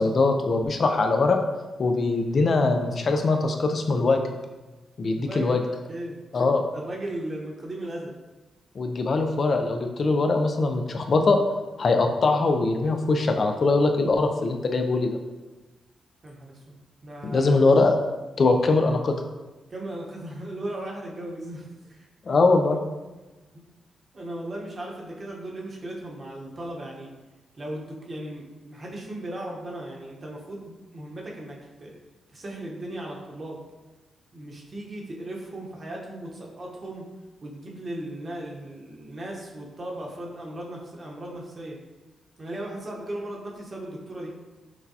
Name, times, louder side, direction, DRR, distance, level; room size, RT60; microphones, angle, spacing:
voice 1, 0.0-1.4 1.8-4.2 5.0-5.6 6.3-6.6 8.8-11.4 11.8-15.2 17.2-17.9 18.4-19.2 22.3-22.8, left 3 dB, 50° left, 5 dB, 0.4 m, -22 dB
voice 2, 5.2-5.6 5.9-6.2 6.7-8.1 16.2-16.8 17.0-17.5 19.7-22.4 23.5-23.6 24.1-27.1 27.6-31.9 32.3-33.6 34.3-37.1 37.4-41.8 42.4-44.3, right 1 dB, 40° right, -2 dB, 1.0 m, -37 dB
6.0 x 2.2 x 2.8 m, 1.1 s
cardioid pair, 80°, 0 cm